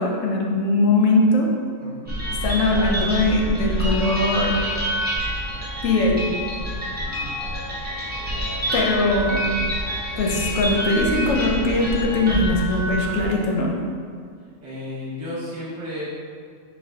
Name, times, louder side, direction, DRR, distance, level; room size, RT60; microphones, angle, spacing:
voice 1, 0.0-1.5 2.4-4.6 5.8-6.2 8.7-9.4 10.2-13.7, left 2 dB, 65° left, -1 dB, 0.9 m, -20 dB
voice 2, 1.8-2.1 7.0-7.3 14.6-16.0, left 1 dB, 30° right, -8 dB, 1.2 m, -33 dB
sound 1, 2.1-13.4, equal, 10° right, 0.7 m, -27 dB
4.5 x 4.2 x 2.7 m, 2.1 s
omnidirectional pair, 1.5 m